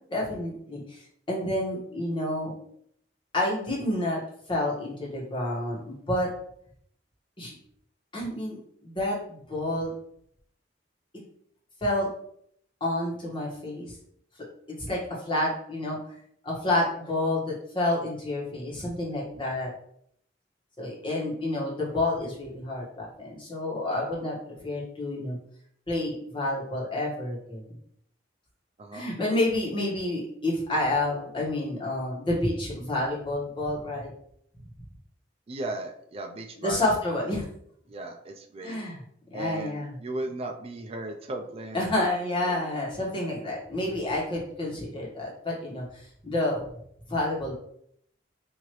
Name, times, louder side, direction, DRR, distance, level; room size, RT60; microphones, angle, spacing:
voice 1, 0.1-1.0 1.3-2.5 3.3-4.2 4.5-6.3 7.4-7.5 8.1-9.9 11.8-12.1 12.8-13.9 14.9-15.0 15.2-16.2 16.4-19.7 20.8-25.4 25.9-27.6 28.9-34.1 36.6-37.4 38.6-39.0 39.3-39.9 41.7-46.6 47.1-47.5, left 1 dB, 30° left, -4 dB, 1.4 m, -29 dB
voice 2, 35.5-36.9 37.3-37.4 37.9-38.8 39.3-42.1 42.3-42.7, right 2 dB, 35° right, 4 dB, 0.4 m, -36 dB
4.5 x 2.8 x 3.1 m, 0.68 s
head